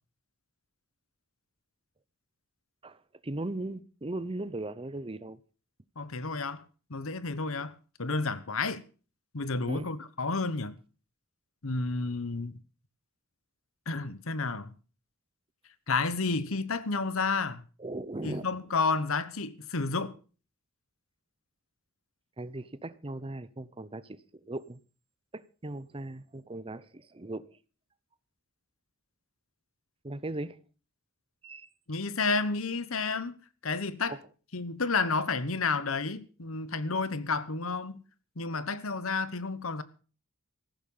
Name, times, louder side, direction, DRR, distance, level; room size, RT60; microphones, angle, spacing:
voice 1, 3.2-5.4 9.7-9.9 17.8-18.4 22.4-24.8 25.3-27.5 30.0-30.6 31.4-31.7 34.1-34.2, right 2 dB, 25° right, 0.8 m, -38 dB
voice 2, 6.0-6.6 6.9-7.7 8.0-8.8 9.3-10.7 11.6-12.5 13.9-14.7 15.9-17.6 18.2-20.2 31.9-33.3 33.6-34.2 34.5-38.0 38.4-39.8, left 4 dB, 75° left, 1.1 m, -31 dB
14.5 x 11.5 x 5.5 m
head